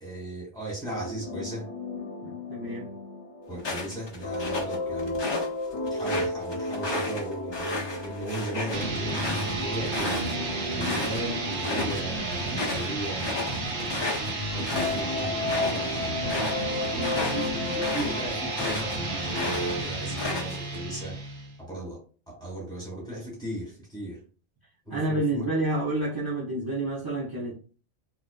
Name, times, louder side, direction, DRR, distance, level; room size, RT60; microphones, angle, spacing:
voice 1, 0.0-1.7 3.5-5.4 5.9-10.2 10.7-16.1 17.2-21.2 21.6-22.0 22.3-24.2 24.9-25.4, right 1 dB, 5° left, 1.1 m, -37 dB
sound 1, 1.0-14.3 14.7-19.8, left 2 dB, 85° left, 1.0 m, -34 dB
voice 2, 2.2-2.9 10.8-10.9 16.9-17.2 24.9-27.6, right 2 dB, 30° right, 0.4 m, -29 dB
sound 2, 3.6-5.5 5.9-11.2 11.5-12.0 12.3-19.0 19.3-20.8, left 2 dB, 40° left, 0.4 m, -33 dB
sound 3, 8.7-21.6, right 2 dB, 85° right, 1.1 m, -32 dB
2.6 x 2.1 x 2.2 m
omnidirectional pair, 1.1 m